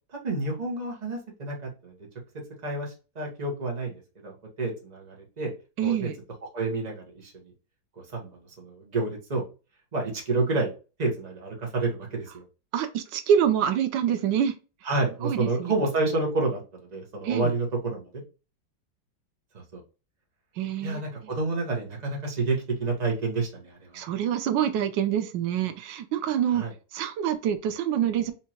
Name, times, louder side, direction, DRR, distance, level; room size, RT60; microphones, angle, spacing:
voice 1, 0.2-1.9 2.6-3.9 4.2-5.5 5.8-6.1 6.5-6.9 7.2-7.3 8.1-8.3 8.6-9.4 9.9-10.7 11.0-12.4 14.8-16.6 16.9-18.2 19.5-19.8 20.8-23.7 26.5-26.7, right 3 dB, 25° right, -1 dB, 1.0 m, -29 dB
voice 2, 5.8-6.2 12.7-14.5 15.2-15.7 17.2-17.5 20.6-21.3 23.9-26.6 26.9-28.3, right 9 dB, 85° right, 8 dB, 1.3 m, -26 dB
4.3 x 2.8 x 2.9 m, 0.32 s
omnidirectional pair, 2.0 m